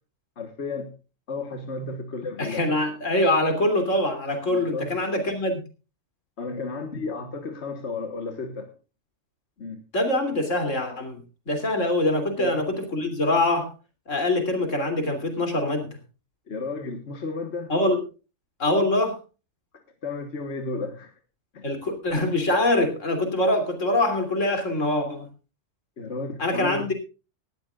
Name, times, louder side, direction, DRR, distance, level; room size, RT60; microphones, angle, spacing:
voice 1, 0.4-0.9 1.3-2.7 4.4-4.9 6.4-8.7 9.6-9.8 12.4-12.6 16.5-17.7 20.0-21.1 21.5-21.7 26.0-26.9, left 3 dB, 65° left, 6 dB, 1.7 m, -33 dB
voice 2, 2.4-5.6 9.9-11.2 11.5-13.7 14.1-15.9 17.7-18.0 18.6-19.2 21.6-25.3 26.4-26.9, left 1 dB, 90° left, 6 dB, 3.4 m, -24 dB
19.0 x 13.0 x 2.4 m, 0.31 s
omnidirectional pair, 1.3 m